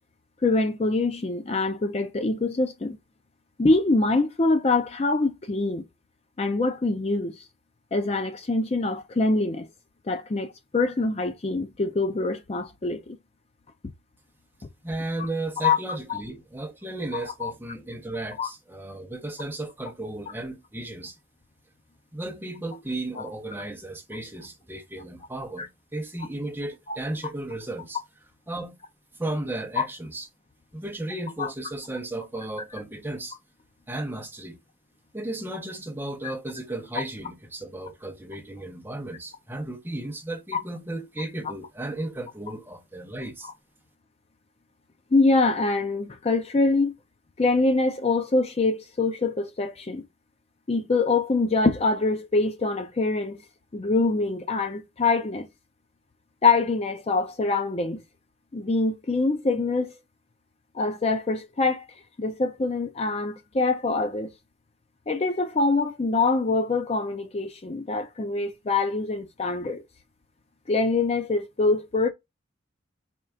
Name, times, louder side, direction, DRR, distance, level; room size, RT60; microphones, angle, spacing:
voice 1, 0.4-3.0 3.6-5.9 6.4-7.4 7.9-9.7 10.1-13.2 15.6-15.8 16.1-16.2 17.4-17.5 18.4-18.5 23.2-23.3 25.6-25.7 26.9-27.0 29.8-29.9 31.4-31.5 43.4-43.5 45.1-46.9 47.4-50.0 50.7-53.4 53.7-55.5 56.4-58.0 58.5-59.9 60.7-61.9 62.2-64.3 65.1-69.8 70.7-72.1, left 3 dB, 30° left, 0.4 m, -24 dB
voice 2, 14.8-21.2 22.1-28.0 28.5-28.8 29.2-30.3 30.7-33.4 33.9-34.6 35.1-43.5, right 2 dB, 10° right, 0.7 m, -34 dB
4.4 x 2.4 x 3.4 m
head